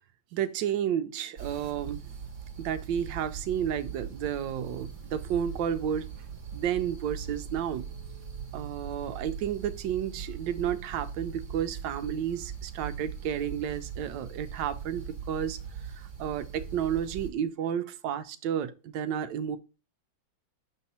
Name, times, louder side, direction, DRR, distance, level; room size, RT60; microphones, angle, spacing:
voice 1, 0.3-2.0 2.6-6.1 6.5-7.9 8.5-15.6 15.9-19.6, right 9 dB, 75° right, 1.2 m, -31 dB
sound 1, 1.4-17.3, right 7 dB, 45° right, 1.2 m, -40 dB
5.7 x 4.1 x 4.1 m
omnidirectional pair, 2.1 m